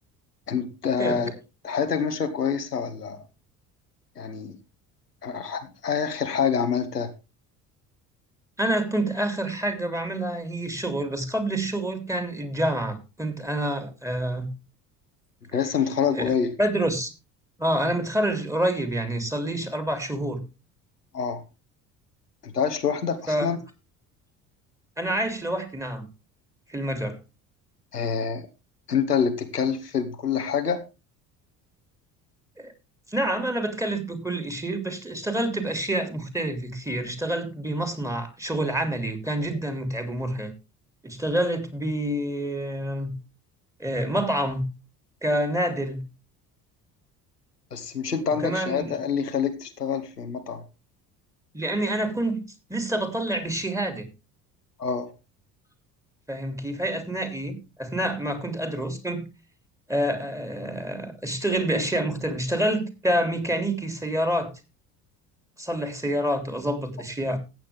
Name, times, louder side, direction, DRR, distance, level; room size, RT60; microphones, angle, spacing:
voice 1, 0.5-1.3 1.6-3.2 4.2-4.6 5.2-7.1 15.5-16.5 21.1-21.4 22.4-23.6 27.9-28.5 28.9-30.8 47.7-50.6 54.8-55.1, left 6 dB, 85° left, 1.3 m, -26 dB
voice 2, 8.6-14.5 16.1-16.2 16.6-17.1 17.6-20.4 23.3-23.5 25.0-26.1 26.7-27.2 32.6-32.7 33.1-40.5 41.0-43.1 43.8-44.7 45.2-46.0 48.4-48.9 51.5-52.4 52.7-54.1 56.3-59.2 59.9-64.5 65.6-67.4, right 1 dB, 5° right, 3.1 m, -27 dB
15.0 x 8.9 x 3.5 m
figure-of-eight pair, 55°, 46 cm